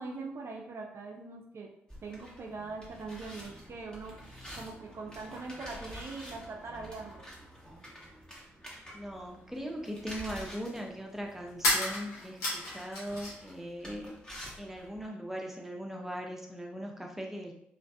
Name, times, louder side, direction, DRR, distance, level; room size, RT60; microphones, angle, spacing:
voice 1, 0.0-1.7 2.0-4.2 4.5-7.3, right 3 dB, 50° right, 1 dB, 0.4 m, -42 dB
sound 1, 1.9-15.1, equal, 15° left, 0.9 m, -49 dB
voice 2, 8.9-14.2 14.6-17.5, equal, 5° right, 1 dB, 0.6 m, -39 dB
sound 2, 9.3-9.4 11.5-13.5 13.8-14.7, left 2 dB, 75° left, 0.8 m, -32 dB
2.5 x 2.4 x 2.3 m, 0.75 s
hypercardioid pair, 45°, 6 cm